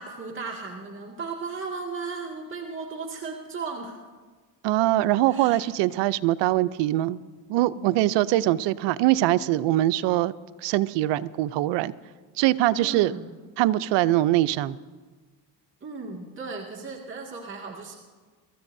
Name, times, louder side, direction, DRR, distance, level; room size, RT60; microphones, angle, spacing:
voice 1, 0.0-4.0 5.3-5.6 12.8-13.3 15.8-17.9, right 4 dB, 30° right, -2 dB, 2.0 m, -36 dB
voice 2, 4.6-7.2 7.5-10.3 10.6-11.9 12.4-13.1 13.6-14.8, right 15 dB, 75° right, 16 dB, 0.6 m, -22 dB
24.0 x 13.5 x 2.7 m, 1.4 s
supercardioid pair, 80°, 43 cm